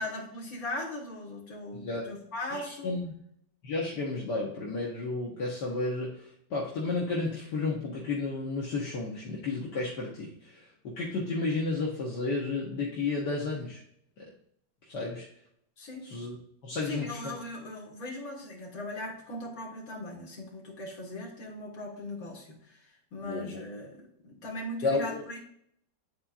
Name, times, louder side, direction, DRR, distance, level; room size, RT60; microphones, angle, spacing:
voice 1, 0.0-3.0 15.8-16.1 16.8-22.6 23.1-25.4, left 1 dB, 50° left, -2 dB, 2.1 m, -39 dB
voice 2, 1.7-2.0 2.5-3.1 3.6-13.8 14.9-15.3 16.0-16.4 16.6-17.4 23.2-23.6 24.8-25.2, left 3 dB, 65° left, -4 dB, 1.7 m, -32 dB
9.9 x 4.3 x 2.4 m, 0.69 s
omnidirectional pair, 2.0 m